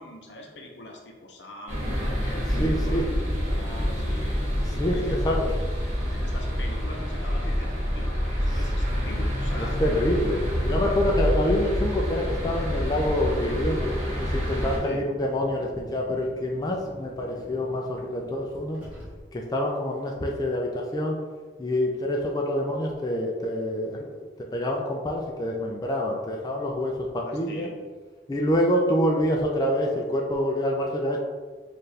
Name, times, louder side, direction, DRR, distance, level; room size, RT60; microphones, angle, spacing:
voice 1, 0.0-3.0 3.5-4.4 4.9-5.4 6.1-10.0 14.8-15.1 27.2-27.8, left 1 dB, 80° left, 1 dB, 0.7 m, -42 dB
sound 1, 1.7-14.8, equal, 40° right, 1.5 m, -27 dB
voice 2, 2.4-3.1 4.1-4.3 4.7-5.6 8.5-8.6 9.6-18.8 19.3-21.2 21.6-27.7 28.3-31.2, left 1 dB, 20° left, 0 dB, 0.3 m, -27 dB
sound 2, 4.1-13.6, equal, 60° right, 1.1 m, -46 dB
Car, 13.1-19.6, equal, 10° right, 1.3 m, -47 dB
4.5 x 2.5 x 3.2 m, 1.4 s
head